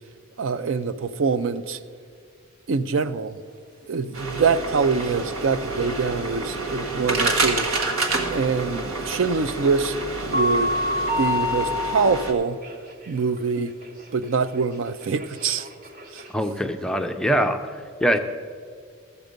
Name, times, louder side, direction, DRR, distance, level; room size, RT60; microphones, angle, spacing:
voice 1, 0.4-1.8 2.7-3.4 3.9-7.7 8.3-10.7 11.2-12.6 13.1-13.7 14.1-15.7 16.1-16.2, right 5 dB, 60° right, 12 dB, 0.4 m, -24 dB
sound 1, 4.1-12.3, right 3 dB, 90° right, 1.5 m, -28 dB
sound 2, 8.3-8.6 9.2-9.7 10.1-12.3 12.6-16.3, left 2 dB, 40° right, 1.0 m, -27 dB
voice 2, 16.3-17.6 18.0-18.2, equal, 5° left, 6 dB, 0.5 m, -22 dB
15.0 x 7.0 x 5.2 m, 2.1 s
head